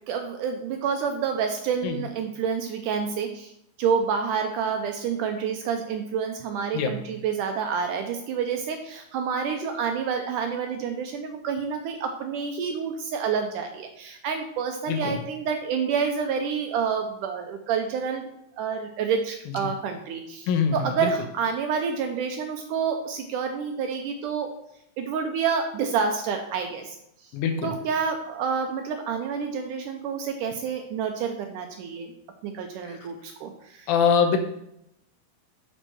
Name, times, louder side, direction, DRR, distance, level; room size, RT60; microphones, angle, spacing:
voice 1, 0.1-3.5 3.8-18.2 18.6-24.5 25.0-27.3 27.6-32.1 32.4-33.9, right 6 dB, 75° right, 5 dB, 1.9 m, -28 dB
voice 2, 20.5-21.1 27.3-27.7 33.9-34.4, left 6 dB, 80° left, 6 dB, 2.6 m, -23 dB
8.0 x 4.5 x 6.1 m, 0.78 s
omnidirectional pair, 4.2 m